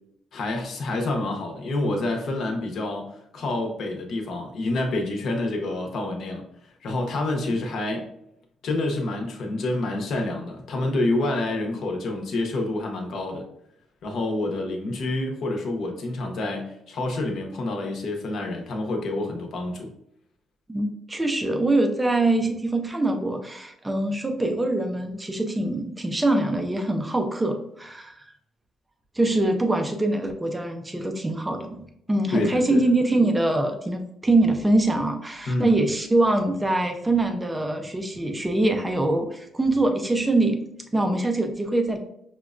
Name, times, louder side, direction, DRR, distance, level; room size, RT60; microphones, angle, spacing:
voice 1, 0.3-6.4 6.8-8.1 8.6-13.4 14.0-19.9 32.3-32.8 35.5-35.7, left 2 dB, 55° left, 2 dB, 0.7 m, -28 dB
voice 2, 20.7-28.3 29.1-31.8 32.1-40.6 40.9-42.0, right 2 dB, 10° right, 5 dB, 0.3 m, -23 dB
5.7 x 2.1 x 2.4 m, 0.74 s
cardioid pair, 165°, 0 cm